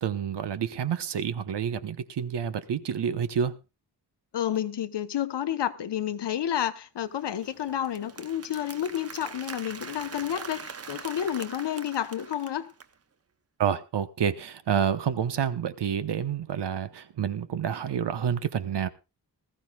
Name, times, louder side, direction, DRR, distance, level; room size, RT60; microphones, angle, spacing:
voice 1, 0.0-3.6 13.6-18.9, right 8 dB, 80° right, 1.1 m, -28 dB
voice 2, 4.3-12.7, left 10 dB, 85° left, 1.0 m, -30 dB
Applause, 7.1-12.9, right 5 dB, 35° right, 0.8 m, -43 dB
20.0 x 14.5 x 2.4 m
wide cardioid pair, 145°, 40 cm